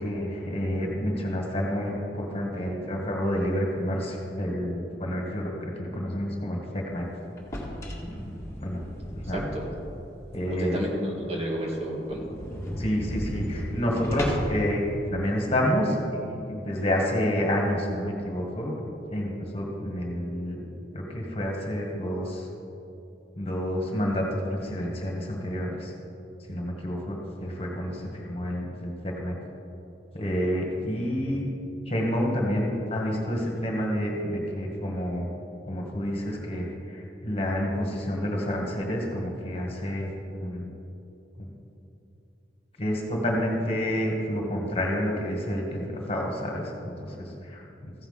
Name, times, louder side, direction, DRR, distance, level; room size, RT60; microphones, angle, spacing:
voice 1, 0.0-7.1 8.6-8.8 9.1-9.5 10.3-10.8 12.8-16.0 16.3-18.8 19.1-20.6 20.9-22.5 23.4-25.9 26.5-29.3 30.1-31.5 31.8-35.3 35.7-40.7 41.4-41.5 42.8-47.9, equal, 35° left, -1 dB, 1.8 m, -29 dB
sound 1, 7.4-9.9 10.3-10.4 10.9-11.0 11.2-11.3 11.6-11.7 12.0-14.6, equal, 15° left, 1.8 m, -34 dB
voice 2, 9.3-9.6 10.5-12.3, equal, 35° right, -2 dB, 1.8 m, -31 dB
15.0 x 5.9 x 5.7 m, 2.8 s
head